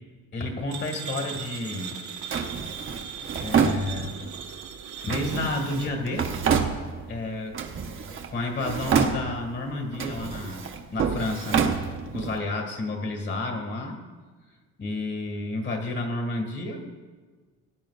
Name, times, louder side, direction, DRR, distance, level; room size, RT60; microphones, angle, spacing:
voice 1, 0.3-2.0 2.9-3.1 3.4-4.1 5.0-6.3 7.1-7.6 8.3-10.6 10.9-11.7 12.1-14.0 14.8-16.9, left 2 dB, 40° left, 3 dB, 2.1 m, -30 dB
sound 1, 0.7-5.9, right 7 dB, 85° right, 1.4 m, -38 dB
Drawer open or close, 2.3-4.4 5.1-7.2 7.5-8.3 8.6-9.6 9.9-12.4, right 6 dB, 40° right, 1.1 m, -28 dB
19.0 x 10.5 x 2.5 m, 1.4 s
cardioid pair, 140°, 30 cm